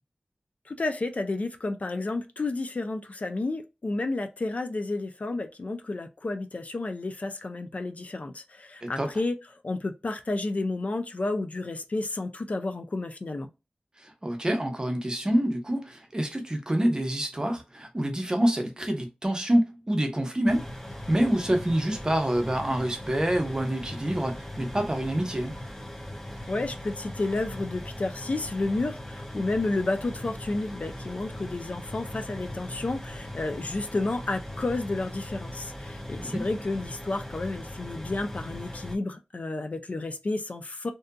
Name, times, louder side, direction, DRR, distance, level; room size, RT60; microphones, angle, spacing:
voice 1, 0.7-9.4 9.6-13.5 26.5-40.9, left 2 dB, 55° left, 0.4 m, -31 dB
voice 2, 14.0-20.7 21.1-25.5 36.2-36.4, right 1 dB, 25° right, 0.7 m, -27 dB
sound 1, 20.5-39.0, left 1 dB, 10° left, 0.6 m, -39 dB
2.6 x 2.5 x 2.2 m
wide cardioid pair, 80°, 3 cm